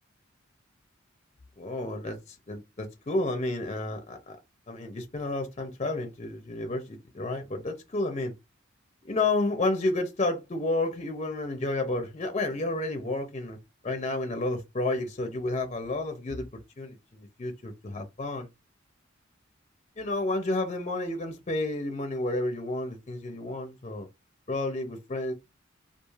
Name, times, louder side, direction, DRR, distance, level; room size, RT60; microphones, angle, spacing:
voice 1, 1.6-4.4 4.7-8.3 9.0-13.6 13.8-16.5 16.8-18.5 20.0-24.1 24.5-25.3, left 2 dB, 35° left, 0.5 m, -31 dB
3.1 x 2.4 x 2.4 m
head